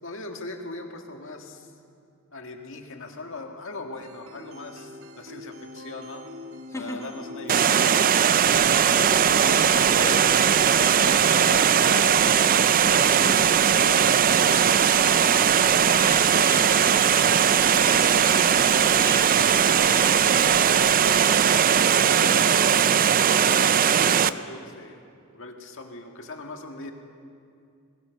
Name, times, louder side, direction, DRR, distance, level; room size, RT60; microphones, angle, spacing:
voice 1, 0.0-1.7 2.3-6.3 6.7-8.2 9.0-10.2 11.3-14.5 21.9-22.6 23.4-25.0 25.3-26.9, left 2 dB, 65° left, 4 dB, 2.0 m, -39 dB
sound 1, 4.0-20.0, left 1 dB, 70° right, 1.4 m, -43 dB
voice 2, 6.7-7.1 15.0-20.9, left 2 dB, 15° left, 3 dB, 1.6 m, -38 dB
Water, 7.5-24.3, right 8 dB, 40° right, 0.5 m, -19 dB
sound 2, 8.4-21.8, left 4 dB, 50° left, 1.3 m, -40 dB
21.5 x 18.5 x 6.6 m, 2.3 s
head